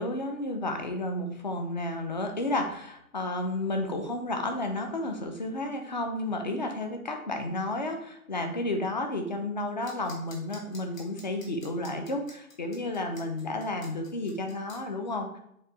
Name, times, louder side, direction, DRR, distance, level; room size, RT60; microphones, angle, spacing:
voice 1, 0.0-15.4, left 2 dB, 30° left, 5 dB, 0.6 m, -32 dB
sound 1, 9.8-14.8, left 3 dB, 60° left, 2.0 m, -49 dB
7.3 x 3.0 x 4.6 m, 0.74 s
hypercardioid pair, 160°, 45 cm